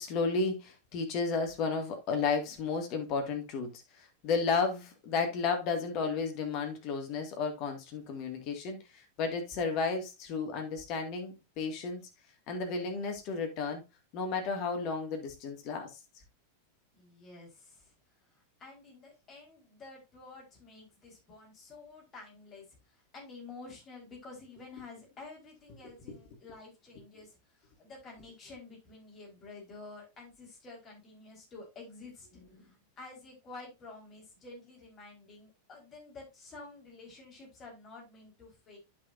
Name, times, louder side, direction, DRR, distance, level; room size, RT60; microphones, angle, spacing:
voice 1, 0.0-12.0 12.5-13.8 14.1-15.9, left 4 dB, 40° left, 2.1 m, -33 dB
voice 2, 16.9-17.9 18.3-27.4 27.8-32.3 32.6-38.8, left 3 dB, 25° left, 4.5 m, -50 dB
11.0 x 5.9 x 2.6 m
figure-of-eight pair, 90°, 0 cm